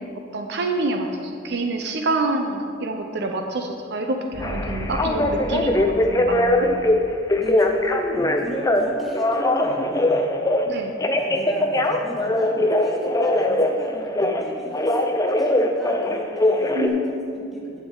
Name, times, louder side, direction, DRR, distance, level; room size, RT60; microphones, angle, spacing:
voice 1, 0.3-6.7 10.7-10.9 16.7-17.7, right 2 dB, 60° right, 4 dB, 0.6 m, -27 dB
sound 1, 4.3-8.3, equal, 85° left, 1.4 m, -36 dB
Telephone, 4.4-6.9 7.3-8.8 9.1-10.7 11.0-14.4 14.7-16.9, left 1 dB, 20° left, 0.5 m, -21 dB
voice 2, 7.3-10.8 11.1-16.8 17.3-17.8, equal, ahead, -5 dB, 1.5 m, -34 dB
10.0 x 7.3 x 3.9 m, 2.4 s
head